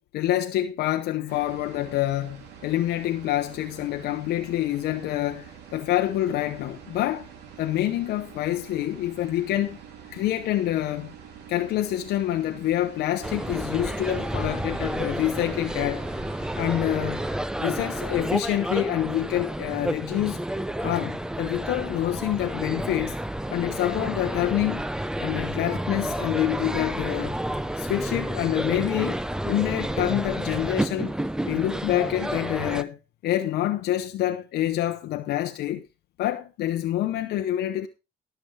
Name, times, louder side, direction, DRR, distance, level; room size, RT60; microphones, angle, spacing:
voice 1, 0.1-7.3 7.6-9.8 10.1-11.1 11.5-16.1 16.6-17.2 17.6-20.4 20.8-23.2 23.5-24.8 25.2-27.4 27.8-31.1 31.5-33.0 33.2-35.9 36.2-37.9, left 13 dB, 75° left, 0.8 m, -27 dB
sound 1, 1.3-17.4, right 7 dB, 80° right, 2.9 m, -46 dB
sound 2, 13.2-32.8, right 1 dB, 5° right, 0.6 m, -30 dB
18.0 x 7.0 x 3.3 m
cardioid pair, 110°, 17 cm